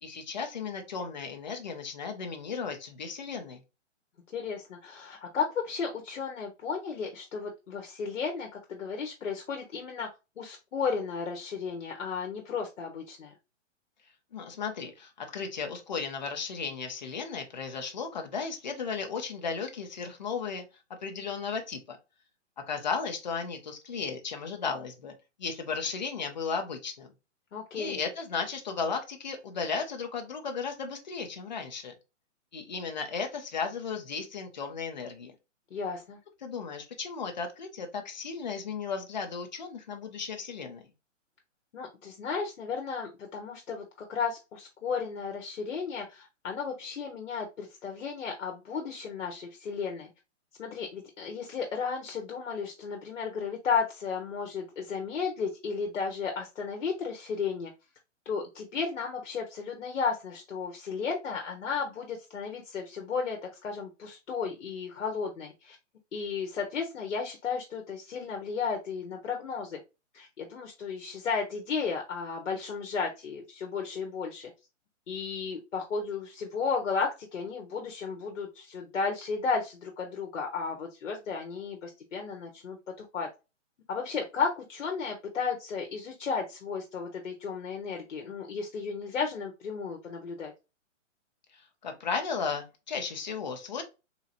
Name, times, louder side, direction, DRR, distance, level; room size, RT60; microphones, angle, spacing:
voice 1, 0.0-3.6 14.3-20.6 21.0-22.0 22.7-25.1 25.4-27.1 27.7-31.9 32.5-35.3 36.4-40.8 91.5-93.8, left 5 dB, 35° left, 4 dB, 0.8 m, -35 dB
voice 2, 4.3-10.1 10.4-13.3 27.5-28.0 35.7-36.2 41.7-50.1 50.6-57.7 58.2-65.8 66.1-69.8 70.1-74.5 75.1-83.3 83.9-90.5, left 5 dB, 70° left, 2 dB, 1.2 m, -34 dB
3.9 x 2.9 x 2.6 m, 0.27 s
hypercardioid pair, 180°, 37 cm